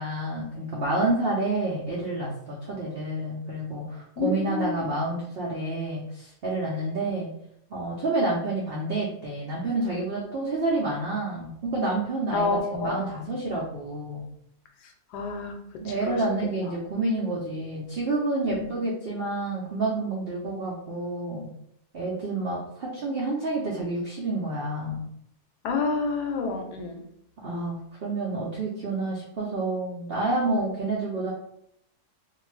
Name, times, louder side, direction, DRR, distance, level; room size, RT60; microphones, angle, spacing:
voice 1, 0.0-7.3 7.7-14.3 15.8-21.5 21.9-25.1 27.4-31.3, right 2 dB, 90° right, -4 dB, 0.5 m, -29 dB
voice 2, 4.2-4.9 12.3-13.0 15.1-15.5 16.0-16.2 18.5-18.7 25.6-27.0, left 3 dB, 80° left, 4 dB, 1.1 m, -28 dB
2.5 x 2.3 x 3.1 m, 0.72 s
omnidirectional pair, 1.7 m